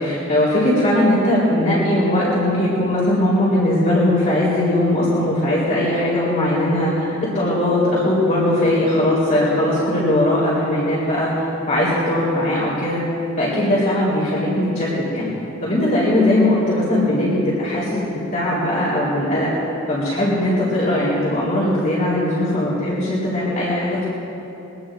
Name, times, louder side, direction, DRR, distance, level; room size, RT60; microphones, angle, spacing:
voice 1, 0.0-13.0 13.4-15.3 15.6-19.5 19.9-24.1, left 1 dB, 40° left, -8 dB, 3.8 m, -19 dB
23.5 x 18.5 x 2.6 m, 3.0 s
head